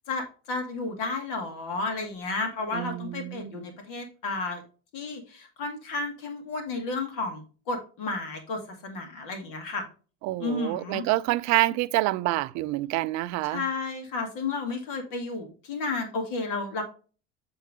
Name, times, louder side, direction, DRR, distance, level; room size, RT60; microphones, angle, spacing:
voice 1, 0.1-4.6 4.9-9.9 10.4-11.1 13.4-16.8, left 3 dB, 70° left, 2.2 m, -32 dB
voice 2, 2.7-3.6 10.2-13.6, right 18 dB, 55° right, 0.5 m, -27 dB
7.6 x 3.8 x 3.6 m
supercardioid pair, 90°, 33 cm